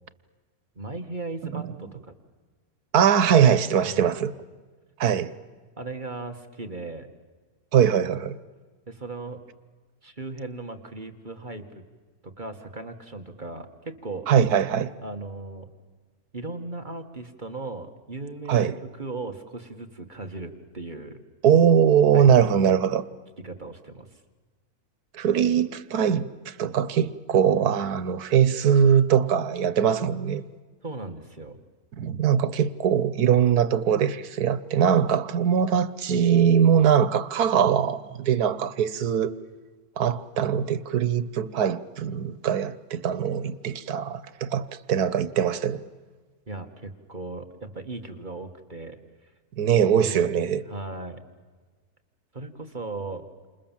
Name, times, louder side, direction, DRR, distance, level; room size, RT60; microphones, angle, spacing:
voice 1, 0.8-2.1 3.8-4.1 5.8-7.1 8.9-9.4 10.0-11.6 12.4-14.3 15.0-15.7 16.3-21.2 22.1-22.8 23.4-24.1 30.8-31.6 46.5-49.3 50.0-51.2 52.3-53.3, right 3 dB, 30° right, 1.8 m, -37 dB
voice 2, 2.9-4.3 5.0-5.3 7.7-8.4 14.3-14.9 18.5-18.8 21.4-23.0 25.1-30.4 32.0-39.3 40.0-45.8 49.6-50.6, right 8 dB, 85° right, 1.5 m, -21 dB
30.0 x 27.0 x 7.4 m
omnidirectional pair, 1.6 m